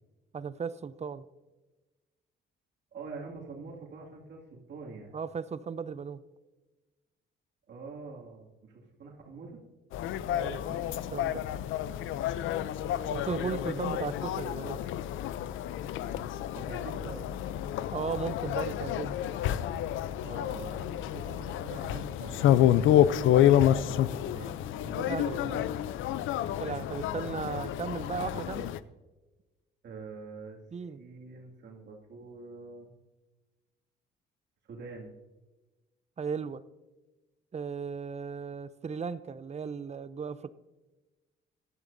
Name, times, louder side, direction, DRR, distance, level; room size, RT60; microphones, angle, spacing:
voice 1, 0.3-1.2 5.1-6.2 10.3-10.8 11.1-11.4 13.1-14.8 17.9-19.2 25.0-25.6 26.6-28.7 30.7-31.0 36.2-36.6 37.5-40.5, right 6 dB, 35° right, 15 dB, 0.6 m, -36 dB
voice 2, 2.9-5.1 7.7-9.6 13.0-13.1 13.5-14.0 16.6-17.4 20.2-22.6 22.9-25.8 27.1-27.2 29.8-30.6 31.0-32.9 34.7-35.1, right 4 dB, 60° right, -1 dB, 2.3 m, -45 dB
sound 1, 9.9-28.8, left 11 dB, 85° left, 0.5 m, -29 dB
17.0 x 12.5 x 2.7 m, 1.2 s
cardioid pair, 90°, 20 cm